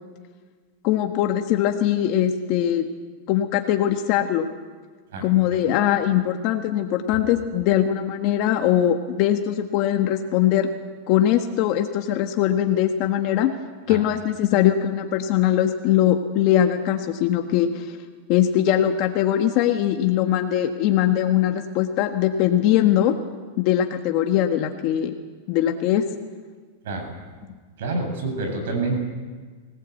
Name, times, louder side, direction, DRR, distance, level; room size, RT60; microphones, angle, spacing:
voice 1, 0.8-2.9 3.3-4.5 5.2-10.7 11.1-13.5 13.9-18.0 18.3-23.1 23.6-25.2 25.5-26.0, left 11 dB, 45° left, 5 dB, 1.4 m, -21 dB
voice 2, 5.1-5.6 13.9-14.0 26.8-27.1 27.8-29.0, right 3 dB, 75° right, 4 dB, 7.4 m, -28 dB
24.0 x 18.5 x 8.3 m, 1.5 s
supercardioid pair, 145°, 0 cm